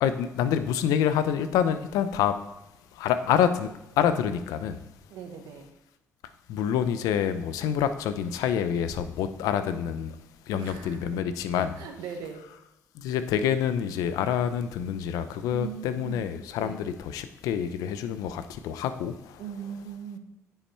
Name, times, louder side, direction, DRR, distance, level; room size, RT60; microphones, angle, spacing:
voice 1, 0.0-2.4 2.9-3.7 4.0-4.8 6.5-10.1 10.5-11.8 12.9-19.4, left 9 dB, 85° left, 0.6 m, -27 dB
voice 2, 3.2-3.6 5.1-5.7 10.5-11.2 11.5-12.5 15.5-16.2 16.6-16.8 19.4-20.2, right 7 dB, 90° right, 1.3 m, -40 dB
9.6 x 5.7 x 4.4 m
cardioid pair, 75°, 6 cm